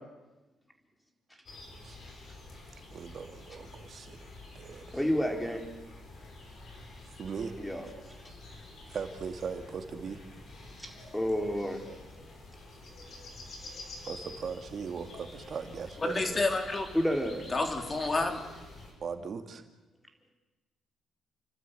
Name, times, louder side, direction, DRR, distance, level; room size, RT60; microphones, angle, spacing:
sound 1, 1.5-18.9, left 2 dB, 55° left, 7.6 m, -49 dB
voice 1, 2.9-5.0 7.2-7.6 8.9-10.2 14.0-16.4 19.0-19.6, right 6 dB, 50° right, 6 dB, 2.3 m, -39 dB
voice 2, 4.9-5.6 7.6-7.8 10.8-11.8 16.9-17.4, equal, 5° left, 3 dB, 4.1 m, -30 dB
voice 3, 16.0-16.9 17.5-18.4, left 3 dB, 30° left, 5 dB, 3.5 m, -29 dB
29.5 x 12.5 x 9.4 m, 1.1 s
cardioid pair, 90°, 0 cm